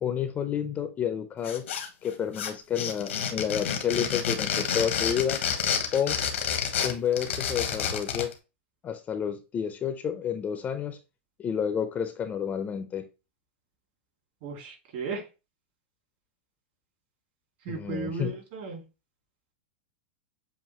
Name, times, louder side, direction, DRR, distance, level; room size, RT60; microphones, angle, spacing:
voice 1, 0.0-1.7 2.0-5.4 5.9-6.2 6.8-8.3 8.8-11.0 11.4-13.0 17.7-18.3, left 8 dB, 25° left, 0.6 m, -30 dB
sound 1, 1.4-2.1 2.3-8.3, left 8 dB, 90° left, 1.3 m, -29 dB
voice 2, 14.4-15.3 17.6-18.8, right 4 dB, 55° right, 2.5 m, -35 dB
7.3 x 2.5 x 2.9 m
hypercardioid pair, 130°, 7 cm